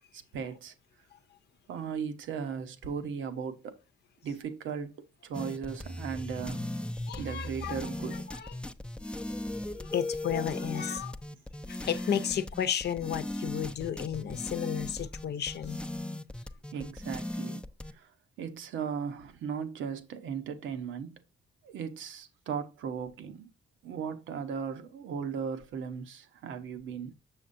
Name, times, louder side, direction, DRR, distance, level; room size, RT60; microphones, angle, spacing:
voice 1, 0.1-0.7 1.7-3.8 4.2-6.7 7.2-8.2 16.7-17.6 17.9-18.1 18.4-21.2 21.6-23.5 23.8-27.1, right 6 dB, 80° right, 1.1 m, -37 dB
sound 1, 5.3-17.9, left 1 dB, 5° left, 0.5 m, -38 dB
voice 2, 7.1-7.8 8.3-8.5 9.7-11.2 11.7-15.8, left 9 dB, 55° left, 0.7 m, -33 dB
7.0 x 6.6 x 2.6 m
cardioid pair, 90°, 20 cm